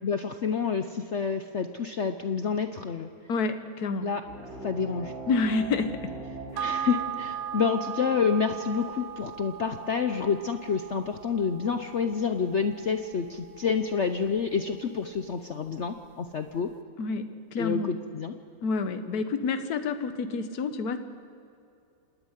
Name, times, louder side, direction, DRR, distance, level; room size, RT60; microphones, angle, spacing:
voice 1, 0.0-3.1 4.0-4.2 4.6-5.1 6.6-16.7 17.6-18.3, left 6 dB, 70° left, 7 dB, 0.6 m, -28 dB
voice 2, 3.3-4.1 5.3-5.9 6.5-6.7 17.0-17.2 17.5-17.9 18.6-21.0, left 4 dB, 55° left, 9 dB, 1.5 m, -28 dB
sound 1, 4.2-9.3, right 2 dB, 30° right, 3.6 m, -42 dB
sound 2, 6.6-15.3 15.7-15.8, right 9 dB, 80° right, 0.7 m, -38 dB
27.0 x 10.0 x 9.8 m, 2.6 s
omnidirectional pair, 2.2 m